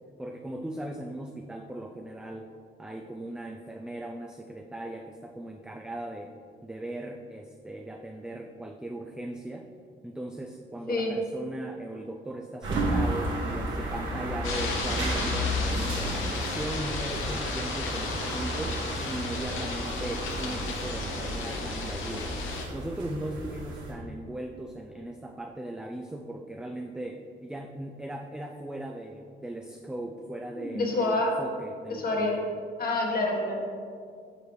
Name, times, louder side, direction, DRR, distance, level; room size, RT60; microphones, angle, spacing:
voice 1, 0.2-2.5 2.8-6.3 6.6-9.7 10.0-22.5 22.7-32.4, right 1 dB, 5° right, 2 dB, 0.3 m, -38 dB
sound 1, 12.6-23.9, equal, 75° right, 1.6 m, -32 dB
sound 2, 14.4-22.7, left 3 dB, 80° left, 0.9 m, -34 dB
voice 2, 30.5-31.3 31.9-32.4 32.8-33.8, left 2 dB, 50° left, -2 dB, 1.4 m, -27 dB
7.6 x 4.9 x 3.1 m, 2.3 s
cardioid pair, 90°, 20 cm